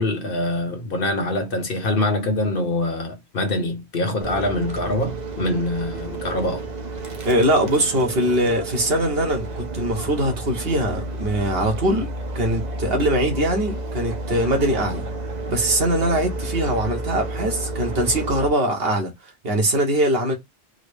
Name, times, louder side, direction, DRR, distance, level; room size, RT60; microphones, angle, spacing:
voice 1, 0.0-6.6, left 2 dB, 60° left, 1.0 m, -24 dB
sound 1, 4.2-18.5, right 2 dB, 45° right, 0.8 m, -31 dB
voice 2, 7.2-15.0 15.5-20.3, right 1 dB, 70° right, 1.3 m, -22 dB
3.8 x 2.0 x 3.2 m
omnidirectional pair, 1.1 m